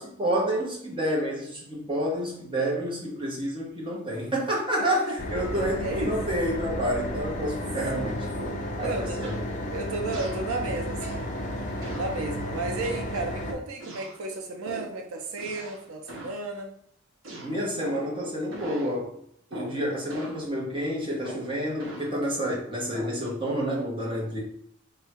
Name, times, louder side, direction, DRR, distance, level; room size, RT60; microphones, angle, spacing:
voice 1, 0.0-8.4 8.8-9.4 17.4-19.1 19.5-24.4, equal, 25° right, -3 dB, 1.2 m, -29 dB
sound 1, 5.2-13.5, left 1 dB, 35° left, 0.6 m, -33 dB
voice 2, 5.8-6.2 7.9-8.1 8.8-9.3 9.7-11.3 11.9-16.7 19.5-19.9, right 3 dB, 90° right, 3 dB, 0.6 m, -33 dB
sound 2, 8.4-8.7 9.2-9.5 10.1-10.5 11.0-11.3 11.8-12.1 12.8-13.4 13.8-14.2 14.6-15.0 15.4-16.4 17.2-18.2 18.5-18.9 19.5-19.8 20.1-20.4 21.2-22.1 22.9-23.2, right 2 dB, 65° right, 0.9 m, -41 dB
3.5 x 2.3 x 4.3 m, 0.67 s
head